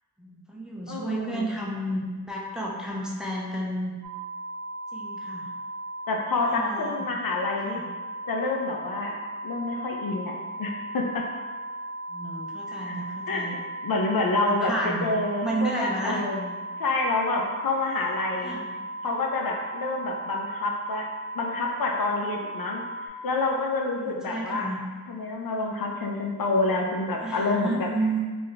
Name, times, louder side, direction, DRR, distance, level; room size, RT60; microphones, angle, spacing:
voice 1, 0.2-3.9 4.9-5.4 6.3-7.0 7.7-7.8 12.1-13.6 14.4-15.2 15.4-16.2 18.4-18.7 23.9-24.8 27.2-28.2, right 1 dB, ahead, -4 dB, 0.5 m, -31 dB
voice 2, 0.9-1.5 6.1-7.8 8.3-11.2 12.7-12.9 13.3-13.4 13.8-18.6 19.0-21.1 21.3-24.7 25.1-27.9, left 3 dB, 75° left, 1 dB, 0.6 m, -28 dB
sound 1, 4.0-23.1, right 1 dB, 90° right, 0.7 m, -37 dB
3.2 x 2.5 x 3.9 m, 1.4 s
wide cardioid pair, 115°, 36 cm